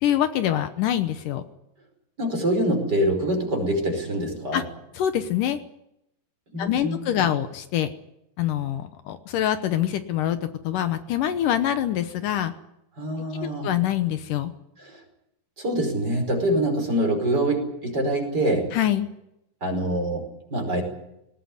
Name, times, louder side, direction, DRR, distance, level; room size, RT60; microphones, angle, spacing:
voice 1, 0.0-1.4 4.5-4.6 5.0-5.6 6.6-7.9 8.4-10.4 10.6-12.5 13.4-14.5 18.7-19.1, left 11 dB, 75° left, 10 dB, 2.5 m, -25 dB
voice 2, 2.2-4.6 6.5-7.0 13.0-13.8 14.8-15.0 15.6-18.7 19.6-20.8, right 1 dB, 30° right, 4 dB, 5.5 m, -25 dB
20.0 x 19.0 x 9.6 m, 0.83 s
omnidirectional pair, 4.0 m